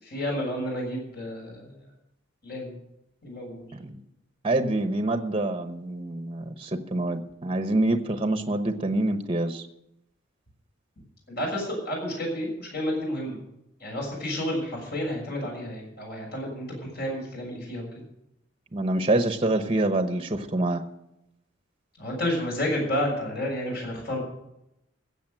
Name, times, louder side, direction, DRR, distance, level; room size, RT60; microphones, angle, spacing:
voice 1, 0.0-1.8 2.4-2.8 3.2-3.6 11.4-13.4 13.8-18.0 22.0-24.2, left 1 dB, 55° left, -1 dB, 6.7 m, -31 dB
voice 2, 4.4-9.7 18.7-20.8, right 2 dB, 30° right, 8 dB, 1.0 m, -26 dB
15.5 x 8.1 x 7.7 m, 0.84 s
head